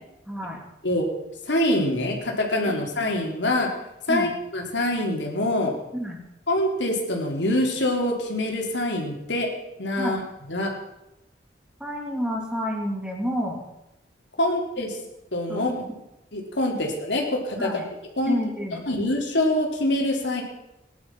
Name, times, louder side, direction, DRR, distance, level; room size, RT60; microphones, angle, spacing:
voice 1, 0.3-0.6 4.1-4.3 5.9-6.2 10.0-10.2 11.8-13.6 14.4-14.6 15.5-15.8 16.7-16.9 17.6-17.9 18.3-18.8, equal, 5° right, 0 dB, 2.7 m, -29 dB
voice 2, 1.5-3.7 4.1-5.7 6.5-9.5 9.8-10.2 10.5-10.7 14.4-14.9 15.3-15.8 16.3-17.7 18.2-18.4 18.9-20.4, left 1 dB, 80° left, 1 dB, 3.6 m, -25 dB
18.5 x 11.0 x 6.1 m, 0.92 s
head